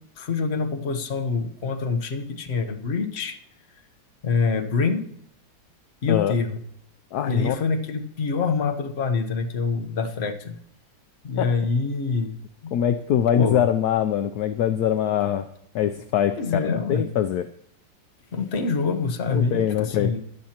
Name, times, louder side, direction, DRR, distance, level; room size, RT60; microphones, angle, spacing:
voice 1, 0.2-3.4 4.2-5.0 6.0-6.6 7.2-10.6 11.2-12.4 12.6-12.7 13.3-13.7 16.4-17.1 18.3-20.2, left 4 dB, 40° left, 6 dB, 1.1 m, -25 dB
voice 2, 7.1-7.6 11.4-11.5 12.7-15.4 15.7-17.4 19.3-20.2, left 10 dB, 70° left, 8 dB, 1.0 m, -23 dB
17.0 x 11.5 x 2.9 m, 0.70 s
omnidirectional pair, 1.9 m